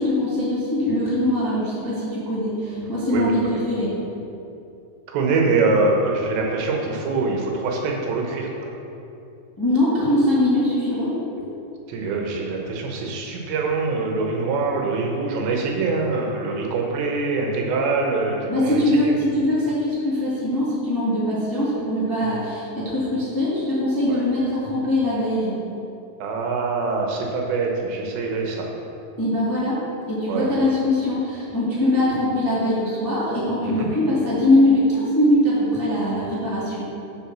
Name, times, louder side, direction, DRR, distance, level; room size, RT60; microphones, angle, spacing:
voice 1, 0.0-3.9 9.6-11.1 18.5-25.5 29.2-29.8 30.1-36.8, left 1 dB, 25° left, -9 dB, 0.4 m, -22 dB
voice 2, 5.1-8.7 11.9-19.1 22.2-22.3 24.1-24.2 26.2-28.7 30.3-30.6 33.6-33.9, right 3 dB, 90° right, 0 dB, 3.3 m, -24 dB
7.3 x 6.9 x 6.0 m, 2.7 s
omnidirectional pair, 4.9 m